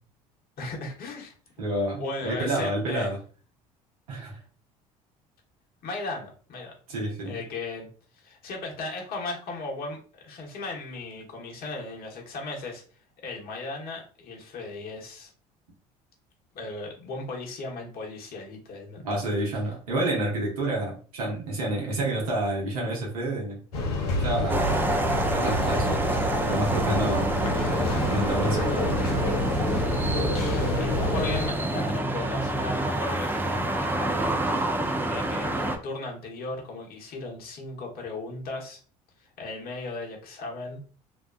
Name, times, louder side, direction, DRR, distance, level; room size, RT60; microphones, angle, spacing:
voice 1, 0.6-1.3 2.0-3.1 5.8-6.7 7.2-7.9 8.1-12.8 13.2-15.3 16.5-19.2 30.7-34.3 34.7-38.8 39.2-40.8, left 3 dB, 55° left, 0 dB, 1.1 m, -36 dB
voice 2, 1.6-3.2 4.1-4.4 6.9-7.4 19.0-23.6 24.2-24.9 25.3-26.1 26.5-27.3 28.1-28.7, right 1 dB, 85° right, -3 dB, 0.8 m, -29 dB
sound 1, 23.7-31.5, left 1 dB, 80° left, 0.6 m, -28 dB
sound 2, 24.5-35.8, right 1 dB, 10° right, 0.5 m, -27 dB
2.7 x 2.2 x 2.3 m, 0.40 s
hypercardioid pair, 65°, 19 cm